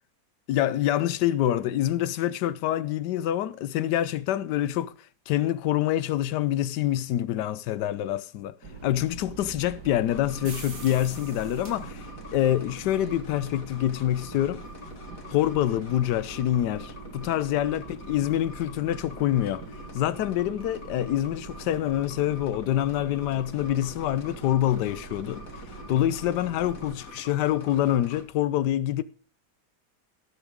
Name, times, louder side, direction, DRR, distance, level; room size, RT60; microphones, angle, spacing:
voice 1, 0.5-4.9 5.3-8.6 8.8-12.1 12.3-14.7 15.3-17.8 18.1-19.6 19.9-25.5 25.9-29.0, left 12 dB, 85° left, 1.3 m, -26 dB
sound 1, 8.6-27.0, right 4 dB, 70° right, 2.7 m, -43 dB
sound 2, 10.1-28.2, left 3 dB, 55° left, 2.5 m, -45 dB
18.5 x 6.9 x 3.6 m
omnidirectional pair, 1.8 m